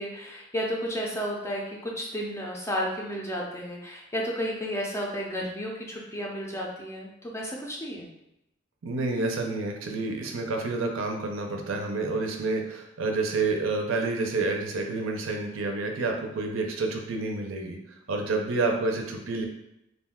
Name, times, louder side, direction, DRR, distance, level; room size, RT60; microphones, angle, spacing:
voice 1, 0.0-8.1, equal, 15° left, -2 dB, 0.4 m, -32 dB
voice 2, 8.8-17.8 18.1-19.4, right 3 dB, 90° right, 2 dB, 0.5 m, -29 dB
2.5 x 2.2 x 3.5 m, 0.87 s
head